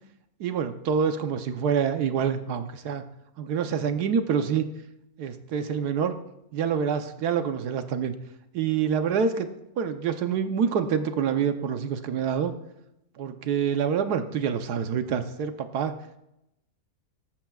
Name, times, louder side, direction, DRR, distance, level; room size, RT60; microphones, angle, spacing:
voice 1, 0.4-3.0 3.4-4.6 5.2-6.2 6.5-8.1 8.5-9.5 9.8-12.5 13.2-15.9, right 7 dB, 90° right, 8 dB, 1.4 m, -26 dB
18.0 x 13.5 x 2.4 m, 0.85 s
omnidirectional pair, 1.6 m